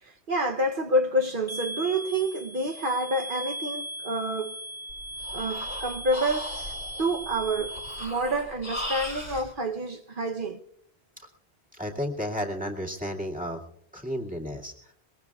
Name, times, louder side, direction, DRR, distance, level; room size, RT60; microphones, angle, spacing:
voice 1, 0.0-4.6 5.3-6.7 7.0-10.6, right 1 dB, 55° right, 1.0 m, -28 dB
sound 1, 1.5-8.0, equal, 20° left, 1.6 m, -38 dB
Breathing, 4.9-9.5, left 1 dB, 85° left, 4.8 m, -37 dB
voice 2, 11.7-13.6 13.9-14.7, equal, 5° right, 2.1 m, -32 dB
22.5 x 20.5 x 2.4 m
omnidirectional pair, 1.1 m